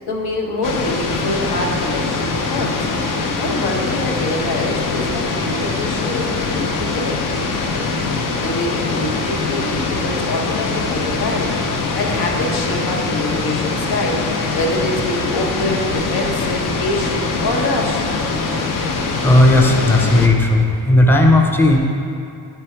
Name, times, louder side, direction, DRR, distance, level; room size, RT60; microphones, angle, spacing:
voice 1, 0.0-2.9 3.4-7.8 8.4-11.5 11.9-14.2 14.5-18.0, left 1 dB, 80° left, 0 dB, 1.0 m, -25 dB
sound 1, 0.6-20.3, left 3 dB, 55° left, 0.6 m, -22 dB
voice 2, 19.2-21.8, left 1 dB, 5° left, 0 dB, 0.5 m, -13 dB
8.9 x 3.4 x 4.4 m, 2.5 s
wide cardioid pair, 120°, 37 cm